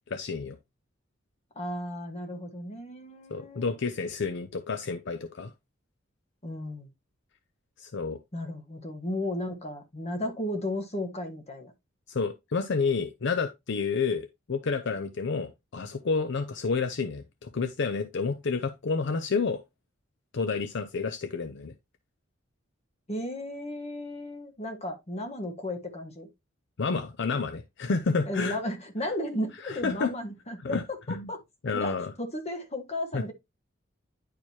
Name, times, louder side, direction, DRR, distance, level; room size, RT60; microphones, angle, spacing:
voice 1, 0.1-0.6 3.3-5.5 7.8-8.2 12.1-19.6 20.3-21.7 26.8-28.6 29.6-30.1 30.6-30.8 31.1-31.3 31.6-32.1 33.1-33.3, left 4 dB, 65° left, 0.6 m, -30 dB
voice 2, 1.5-3.7 6.4-6.9 8.3-11.7 23.1-26.3 28.3-31.4 31.7-33.3, left 1 dB, 35° left, 1.5 m, -34 dB
10.0 x 4.6 x 2.8 m
head